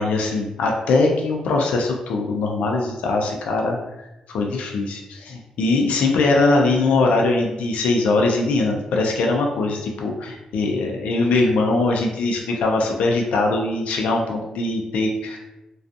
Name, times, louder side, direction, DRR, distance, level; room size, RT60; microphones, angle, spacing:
voice 1, 0.0-3.8 4.3-15.4, left 3 dB, 85° left, 1 dB, 0.3 m, -21 dB
2.4 x 2.3 x 2.5 m, 0.96 s
cardioid pair, 55°, 2 cm